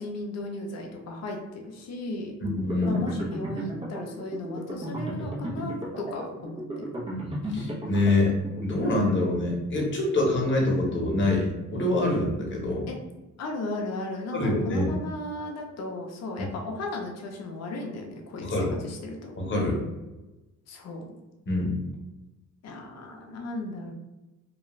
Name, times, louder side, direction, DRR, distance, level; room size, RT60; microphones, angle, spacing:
voice 1, 0.0-2.4 2.9-6.8 12.9-13.0 13.4-18.6 18.8-19.3 20.7-21.1 22.6-23.9, left 2 dB, 60° left, 1 dB, 0.7 m, -35 dB
voice 2, 2.4-3.0 7.5-8.3 8.6-12.9 14.3-14.9 18.4-18.8 19.4-19.8 21.5-21.8, left 2 dB, 40° left, -2 dB, 1.0 m, -25 dB
sound 1, 2.4-9.1, equal, 15° right, 0.8 m, -35 dB
2.4 x 2.3 x 3.1 m, 1.1 s
cardioid pair, 90°, 30 cm